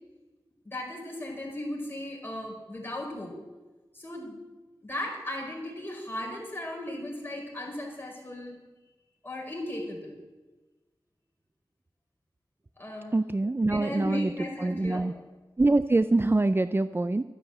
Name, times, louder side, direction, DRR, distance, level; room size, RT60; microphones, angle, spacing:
voice 1, 0.6-3.3 3.9-4.4 4.8-8.6 9.2-10.1 12.8-13.2 13.5-15.2, left 1 dB, 25° left, -1 dB, 5.0 m, -36 dB
voice 2, 13.1-14.3 14.6-15.1 15.6-17.2, right 2 dB, 30° right, 12 dB, 0.4 m, -24 dB
12.5 x 10.0 x 7.8 m, 1.2 s
wide cardioid pair, 70°, 8 cm